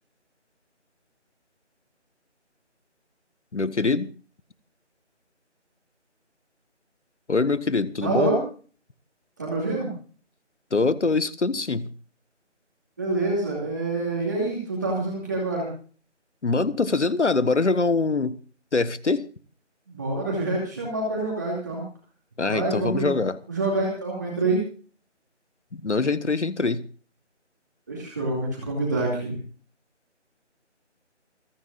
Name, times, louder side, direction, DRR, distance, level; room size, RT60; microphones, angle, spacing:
voice 1, 3.5-4.1 7.3-8.3 10.7-11.9 16.4-18.4 18.7-19.2 22.4-23.4 25.7-26.8, left 3 dB, 70° left, 15 dB, 1.4 m, -23 dB
voice 2, 8.0-8.4 9.4-9.9 13.0-15.7 19.9-21.8 22.5-23.1 23.5-24.6 27.9-29.4, right 2 dB, 15° right, -3 dB, 2.5 m, -26 dB
28.0 x 10.0 x 2.5 m, 0.41 s
figure-of-eight pair, 170°, 36 cm